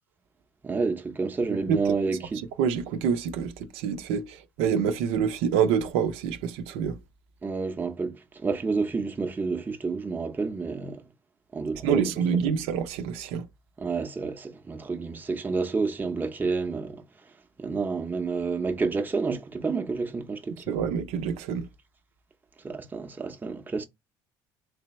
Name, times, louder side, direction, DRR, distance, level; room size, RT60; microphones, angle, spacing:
voice 1, 0.6-2.4 7.4-11.0 11.5-12.1 13.8-17.0 17.6-20.8 22.6-23.8, right 4 dB, 20° right, 0.7 m, -29 dB
voice 2, 2.6-7.0 11.8-13.5 20.7-21.7, right 7 dB, 80° right, 0.6 m, -26 dB
3.3 x 3.3 x 3.0 m
supercardioid pair, 100°, 10 cm